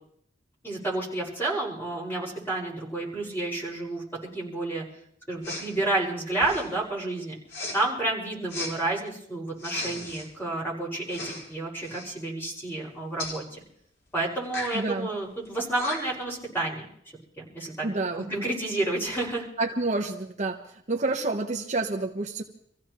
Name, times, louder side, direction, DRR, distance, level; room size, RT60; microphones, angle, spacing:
voice 1, 0.6-4.0 4.3-4.8 5.3-7.4 7.7-13.4 14.1-16.9 17.4-17.9 18.1-19.5, right 2 dB, 10° left, -5 dB, 5.4 m, -30 dB
Respiratory sounds, 5.4-5.7 6.3-6.8 7.5-7.8 8.5-8.7 9.6-10.3 11.1-11.5 11.8-12.1 13.2-13.4 14.4-14.8 15.5-15.6 15.7-16.2, left 2 dB, 75° left, 5.3 m, -35 dB
voice 2, 14.7-15.1 17.8-18.3 19.6-20.6 20.9-22.4, right 2 dB, 40° right, 2 dB, 1.0 m, -28 dB
26.5 x 15.5 x 3.0 m, 0.66 s
head